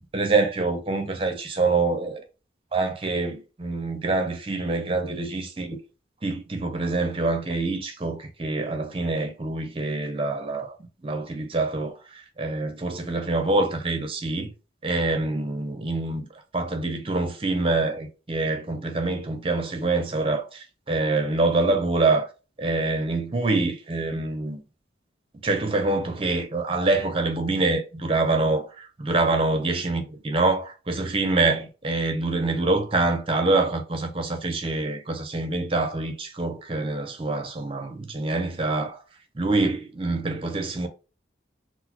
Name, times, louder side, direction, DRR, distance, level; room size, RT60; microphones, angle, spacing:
voice 1, 0.1-2.2 2.7-5.8 6.2-10.8 11.0-14.5 14.8-16.3 16.5-22.3 22.6-24.6 25.3-39.0 39.3-40.9, right 3 dB, 30° right, 0.5 m, -25 dB
4.0 x 2.0 x 2.8 m
head